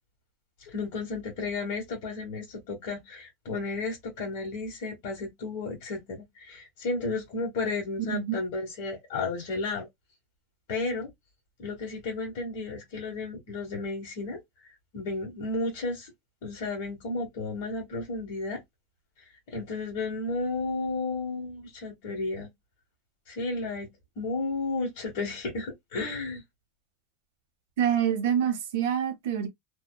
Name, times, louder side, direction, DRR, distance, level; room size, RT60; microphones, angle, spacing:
voice 1, 0.6-9.9 10.7-11.1 11.6-14.4 14.9-16.1 16.4-18.6 19.5-22.5 23.3-23.9 24.2-26.4, left 3 dB, 60° left, 1.2 m, -33 dB
voice 2, 27.8-29.5, right 9 dB, 75° right, 0.8 m, -26 dB
2.7 x 2.1 x 2.2 m
supercardioid pair, 170°, 0 cm